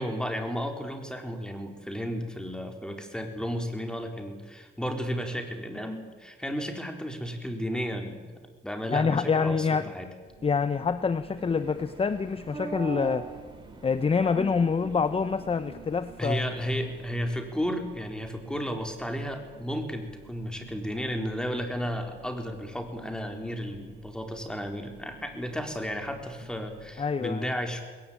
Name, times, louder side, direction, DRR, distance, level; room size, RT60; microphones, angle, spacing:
voice 1, 0.0-8.3 8.6-10.1 16.2-27.8, equal, 5° left, 4 dB, 4.1 m, -33 dB
voice 2, 8.9-9.9 10.4-13.3 13.8-16.4 27.0-27.5, left 5 dB, 30° left, 12 dB, 0.9 m, -26 dB
sound 1, 10.2-26.9, right 5 dB, 80° right, 5.3 m, -52 dB
sound 2, 11.4-17.0, right 4 dB, 25° right, 3.3 m, -42 dB
20.5 x 18.5 x 8.7 m, 1.4 s
cardioid pair, 90°, 20 cm